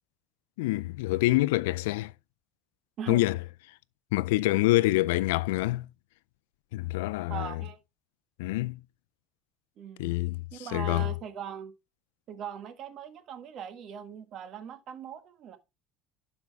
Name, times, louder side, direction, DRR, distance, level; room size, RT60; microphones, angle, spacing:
voice 1, 0.6-2.1 3.1-3.4 4.1-5.9 6.7-7.6 8.4-8.8 10.0-11.1, left 19 dB, 90° left, 0.3 m, -26 dB
voice 2, 7.3-7.8 9.8-10.1 10.5-11.7 12.3-15.6, right 8 dB, 50° right, 1.6 m, -40 dB
11.5 x 5.3 x 3.4 m
supercardioid pair, 115°, 0 cm